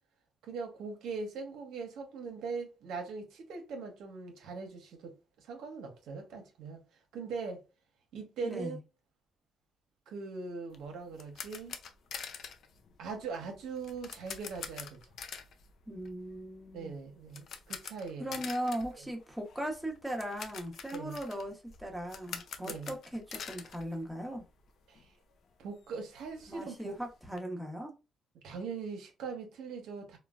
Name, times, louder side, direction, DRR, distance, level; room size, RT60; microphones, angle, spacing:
voice 1, 0.4-6.8 7.1-7.6 8.1-8.8 10.1-11.8 13.0-15.0 16.7-18.4 20.9-21.2 22.6-22.9 24.9-25.1 25.6-26.9 28.4-30.2, right 4 dB, 85° right, 0.7 m, -41 dB
voice 2, 8.4-8.8 15.9-16.9 18.2-24.4 26.5-27.9, equal, 5° right, 0.8 m, -38 dB
sound 1, 10.7-24.7 24.9-25.1 25.5-25.6 25.8-27.4, left 6 dB, 65° left, 0.4 m, -46 dB
3.1 x 2.1 x 2.3 m
cardioid pair, 90°, 0 cm